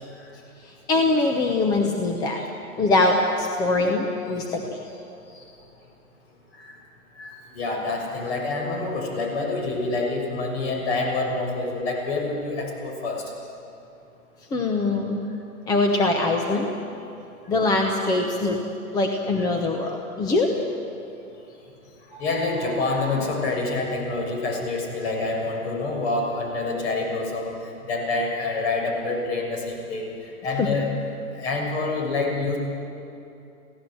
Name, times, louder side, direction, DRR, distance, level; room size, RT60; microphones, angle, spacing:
voice 1, 0.6-2.4 2.8-4.8 14.5-15.3 15.7-16.8 17.5-18.6 18.9-20.5 30.6-30.7, left 2 dB, 10° left, 2 dB, 0.9 m, -23 dB
voice 2, 7.2-13.3 17.5-17.6 22.1-27.5 27.8-30.1 30.4-30.9 31.4-32.6, left 3 dB, 45° left, 1 dB, 6.6 m, -27 dB
26.0 x 17.0 x 7.9 m, 2.7 s
hypercardioid pair, 145°, 44 cm